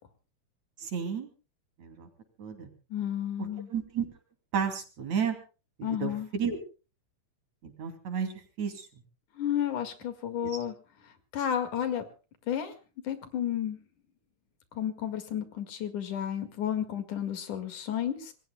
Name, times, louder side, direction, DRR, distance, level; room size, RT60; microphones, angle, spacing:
voice 1, 0.8-1.3 1.8-2.1 2.4-2.7 3.7-4.1 4.5-5.4 5.8-6.6 7.6-8.3 8.6-8.9, right 7 dB, 65° right, 5 dB, 4.1 m, -32 dB
voice 2, 2.9-3.7 5.8-6.3 9.3-10.7 11.3-12.0 12.5-12.7 13.0-13.8 14.7-18.3, left 10 dB, 80° left, 8 dB, 3.5 m, -32 dB
27.0 x 21.0 x 2.2 m, 0.35 s
omnidirectional pair, 3.4 m